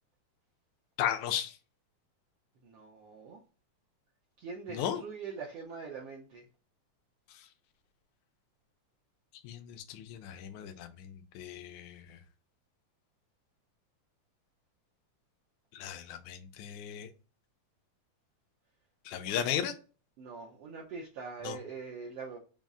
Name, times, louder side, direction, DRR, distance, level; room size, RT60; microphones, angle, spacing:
voice 1, 1.0-1.6 4.7-5.0 9.4-12.2 15.7-17.1 19.1-19.7 21.4-21.6, left 10 dB, 80° left, 2.0 m, -35 dB
voice 2, 2.6-3.4 4.4-6.5 19.2-19.4 20.2-22.4, right 5 dB, 90° right, 1.3 m, -43 dB
5.3 x 2.0 x 3.5 m
omnidirectional pair, 3.5 m